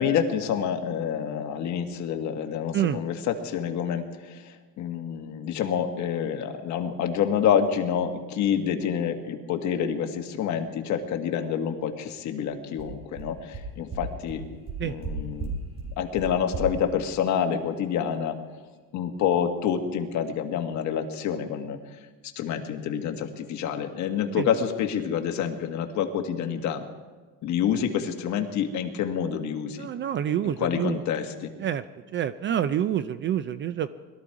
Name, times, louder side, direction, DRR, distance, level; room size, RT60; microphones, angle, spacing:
voice 1, 0.0-14.4 14.8-15.5 16.0-18.4 18.9-21.8 22.4-26.8 27.4-29.9 30.4-31.5, left 8 dB, 50° left, 4 dB, 1.6 m, -27 dB
sound 1, 12.4-12.5 12.8-12.9 13.2-13.3 13.5-13.6 13.9-14.0 14.3-14.4 14.7-15.1 15.4-15.5 15.8-15.9 16.2-16.3 16.5-16.6, right 6 dB, 15° right, 3.4 m, -35 dB
voice 2, 29.8-31.0 31.6-31.8 32.1-33.9, right 10 dB, 35° right, 14 dB, 0.4 m, -27 dB
21.5 x 13.5 x 4.8 m, 1.3 s
cardioid pair, 150°, 36 cm